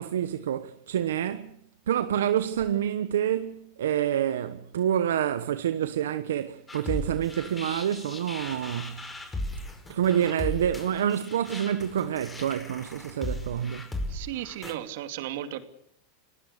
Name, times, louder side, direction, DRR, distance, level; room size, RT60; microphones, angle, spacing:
voice 1, 0.0-1.6 1.9-9.1 9.9-13.9, right 10 dB, 85° right, 1.0 m, -27 dB
sound 1, 6.7-14.7, left 1 dB, 15° left, 5.1 m, -37 dB
voice 2, 14.1-15.6, right 12 dB, 70° right, 2.6 m, -35 dB
30.0 x 18.5 x 6.7 m
hypercardioid pair, 120°, 0 cm